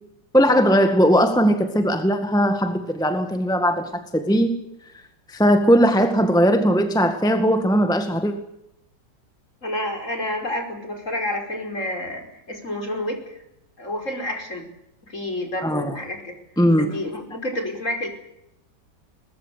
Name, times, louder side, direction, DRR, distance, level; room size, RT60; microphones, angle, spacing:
voice 1, 0.3-4.6 5.3-8.3 15.6-16.0 16.6-16.9, equal, ahead, 7 dB, 1.8 m, -19 dB
voice 2, 9.6-13.4 13.8-14.7 15.1-16.4 16.8-18.1, left 1 dB, 40° left, 4 dB, 5.6 m, -29 dB
23.0 x 20.5 x 8.4 m, 0.83 s
omnidirectional pair, 1.9 m